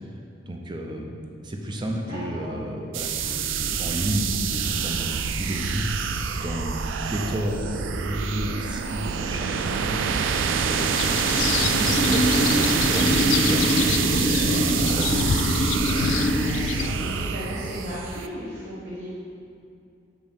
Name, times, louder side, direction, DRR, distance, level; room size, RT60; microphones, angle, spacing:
voice 1, 0.4-1.1 1.4-6.0 6.3-15.4, equal, 25° right, 1 dB, 0.5 m, -32 dB
voice 2, 2.1-2.6 16.3-19.1, equal, 65° right, -10 dB, 1.3 m, -36 dB
sound 1, 2.9-18.3, right 6 dB, 85° right, 0.3 m, -26 dB
sound 2, 8.9-17.3, left 1 dB, 25° left, 0.5 m, -26 dB
sound 3, 11.0-16.9, left 8 dB, 80° left, 0.3 m, -29 dB
7.1 x 3.1 x 5.1 m, 2.5 s
head